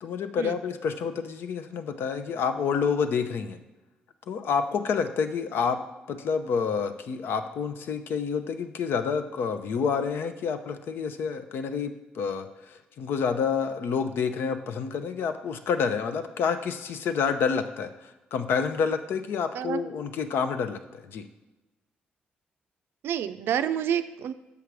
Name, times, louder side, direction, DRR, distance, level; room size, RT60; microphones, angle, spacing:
voice 1, 0.0-3.6 4.3-5.8 6.1-21.2, left 6 dB, 75° left, 9 dB, 0.6 m, -28 dB
voice 2, 19.5-19.9 23.0-24.3, right 9 dB, 75° right, 11 dB, 0.4 m, -28 dB
7.0 x 5.8 x 4.8 m, 1.0 s
supercardioid pair, 60°, 4 cm